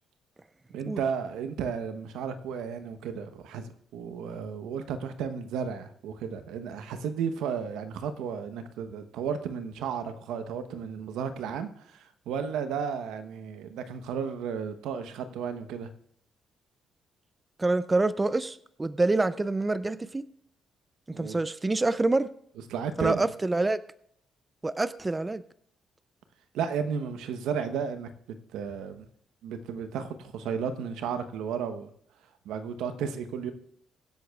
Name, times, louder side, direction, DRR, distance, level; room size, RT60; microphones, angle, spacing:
voice 1, 0.7-15.9 21.1-21.4 22.7-23.2 26.5-28.1 28.5-29.0 29.4-31.9 32.4-33.5, right 7 dB, 90° right, 0.9 m, -33 dB
voice 2, 17.6-20.3 21.1-22.3 23.0-23.8 24.6-25.4, right 2 dB, 20° right, 0.4 m, -26 dB
23.0 x 8.0 x 2.3 m
cardioid pair, 90°, 0 cm